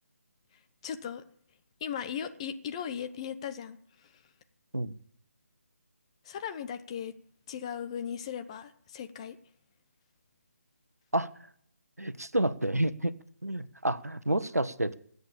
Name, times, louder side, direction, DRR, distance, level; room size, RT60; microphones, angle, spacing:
voice 1, 0.8-1.2 1.8-4.1 6.2-7.1 7.5-9.4, left 8 dB, 25° left, 9 dB, 0.9 m, -37 dB
voice 2, 12.0-13.1 13.4-14.9, right 1 dB, 85° right, 14 dB, 1.1 m, -29 dB
20.0 x 8.2 x 7.1 m, 0.66 s
figure-of-eight pair, 150°, 8 cm